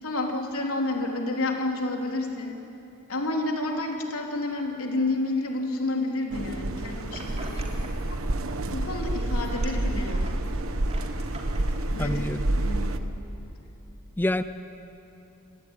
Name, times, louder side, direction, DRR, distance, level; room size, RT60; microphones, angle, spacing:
voice 1, 0.0-2.6 3.1-8.2 8.7-10.2 11.9-12.9, left 2 dB, 80° left, 1 dB, 3.5 m, -30 dB
sound 1, 6.3-13.0, right 1 dB, 70° right, 1.1 m, -28 dB
sound 2, 6.7-8.1 8.4-9.0 9.2-11.7, right 2 dB, 30° right, 3.3 m, -44 dB
voice 2, 12.0-12.5 14.2-14.4, left 1 dB, 10° left, 11 dB, 0.5 m, -26 dB
28.5 x 17.5 x 9.8 m, 3.0 s
head